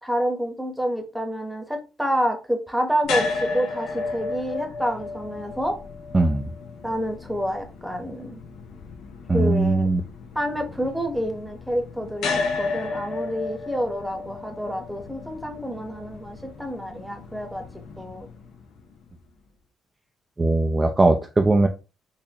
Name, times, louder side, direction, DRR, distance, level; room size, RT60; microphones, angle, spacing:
voice 1, 0.0-5.8 6.8-8.4 9.3-9.9 10.3-12.3 12.6-17.6 18.0-18.3, equal, 5° right, 1.0 m, -28 dB
sound 1, 3.0-19.2, left 4 dB, 85° left, 0.7 m, -34 dB
voice 2, 6.1-6.5 9.3-10.0 20.4-21.7, right 2 dB, 20° right, 0.4 m, -19 dB
4.0 x 2.7 x 2.8 m
cardioid pair, 90°, 0 cm